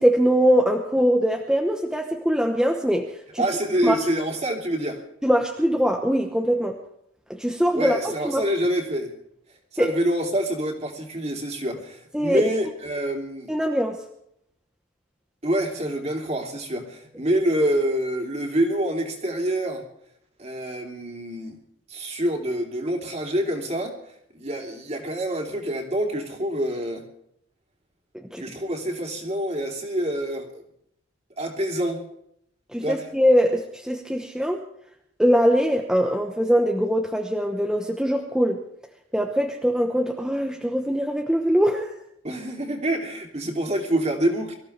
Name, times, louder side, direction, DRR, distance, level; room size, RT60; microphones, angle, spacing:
voice 1, 0.0-3.1 3.3-3.4 3.8-4.0 5.2-6.8 7.3-8.5 9.8-9.9 12.1-12.4 13.5-14.0 28.3-28.4 32.7-34.6 35.2-38.6 39.1-41.9, equal, 5° right, 2 dB, 1.0 m, -22 dB
voice 2, 3.4-5.0 7.7-9.1 9.7-13.5 15.4-19.8 20.4-21.6 21.9-23.9 24.3-27.0 28.4-30.6 31.4-32.0 32.8-33.1 42.2-44.6, right 1 dB, 30° right, 2 dB, 2.9 m, -26 dB
24.0 x 15.0 x 3.4 m, 0.74 s
head